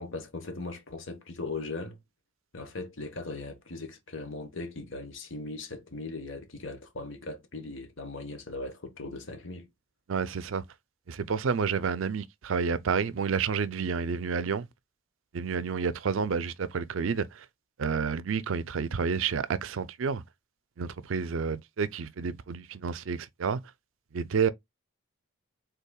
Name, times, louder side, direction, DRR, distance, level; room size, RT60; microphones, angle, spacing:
voice 1, 0.0-2.0 2.5-9.7, left 3 dB, 70° left, 1.1 m, -39 dB
voice 2, 10.1-10.6 11.1-14.7 15.3-17.5 17.8-20.2 20.8-23.6 24.1-24.5, right 6 dB, 75° right, 0.5 m, -30 dB
5.5 x 3.8 x 2.3 m
head